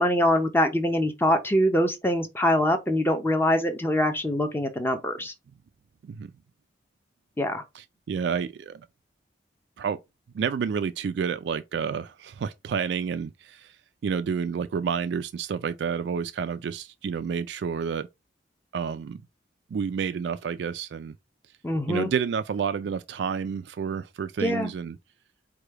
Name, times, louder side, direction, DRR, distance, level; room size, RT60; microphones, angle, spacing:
voice 1, 0.0-5.3 7.4-7.6 21.6-22.1 24.4-24.7, left 1 dB, 10° left, 0.5 m, -24 dB
voice 2, 7.7-8.8 9.8-10.0 10.3-18.1 18.7-19.2 19.7-21.1 21.9-25.0, right 6 dB, 70° right, 0.3 m, -30 dB
4.9 x 2.3 x 4.5 m
head